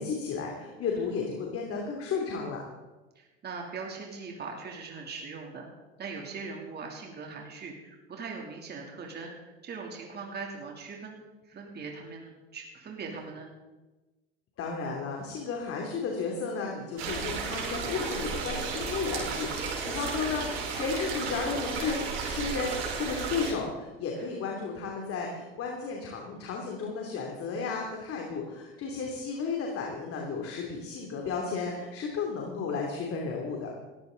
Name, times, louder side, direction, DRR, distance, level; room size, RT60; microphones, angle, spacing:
voice 1, 0.0-2.6 14.6-33.7, left 5 dB, 45° left, 0 dB, 2.9 m, -33 dB
voice 2, 3.1-5.7 6.0-13.5 24.2-24.3, right 4 dB, 30° right, 0 dB, 3.0 m, -41 dB
sound 1, 17.0-23.5, right 5 dB, 60° right, 5.0 m, -33 dB
17.5 x 15.0 x 4.0 m, 1.2 s
hypercardioid pair, 90°, 31 cm